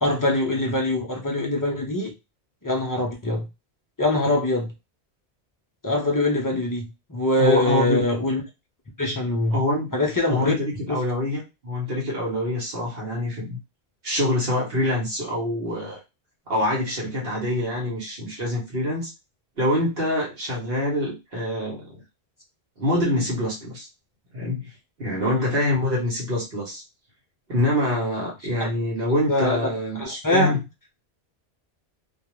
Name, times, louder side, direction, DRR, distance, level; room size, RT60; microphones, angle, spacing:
voice 1, 0.0-2.1 2.6-3.4 4.0-4.7 5.8-8.4 9.0-9.6 9.9-10.5 10.9-11.0 25.2-25.5 28.6-28.7 29.3-30.6, left 1 dB, 30° left, -1 dB, 0.4 m, -23 dB
voice 2, 7.4-8.0 9.5-9.9 10.3-13.6 14.0-16.0 16.5-19.1 19.6-22.0 22.8-23.9 24.3-24.7 25.0-26.8 27.5-30.6, left 1 dB, 65° right, -3 dB, 1.1 m, -25 dB
2.3 x 2.3 x 3.0 m, 0.25 s
omnidirectional pair, 1.1 m